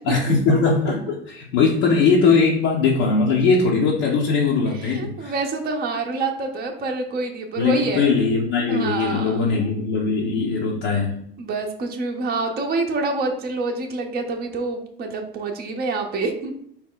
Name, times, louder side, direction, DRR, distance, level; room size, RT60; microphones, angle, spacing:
voice 1, 0.0-5.3 7.6-11.1, left 4 dB, 60° left, -3 dB, 0.8 m, -20 dB
voice 2, 4.7-8.1 8.7-9.4 11.4-16.5, right 3 dB, 30° right, 3 dB, 0.6 m, -27 dB
4.2 x 2.1 x 3.8 m, 0.70 s
hypercardioid pair, 75°, 30 cm